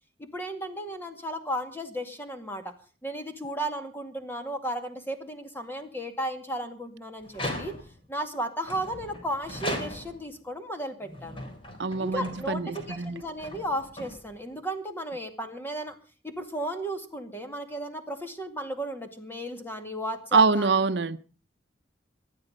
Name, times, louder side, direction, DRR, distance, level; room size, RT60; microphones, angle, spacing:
voice 1, 0.2-2.7 3.0-7.8 8.1-11.4 12.0-12.6 12.9-15.9 16.2-20.7, right 1 dB, 10° left, 2.1 m, -34 dB
sound 1, 7.2-8.1 8.7-10.3 11.0-14.6, left 1 dB, 30° left, 3.6 m, -38 dB
voice 2, 11.8-13.2 20.3-21.2, right 4 dB, 65° right, 0.8 m, -24 dB
19.0 x 12.5 x 5.3 m
head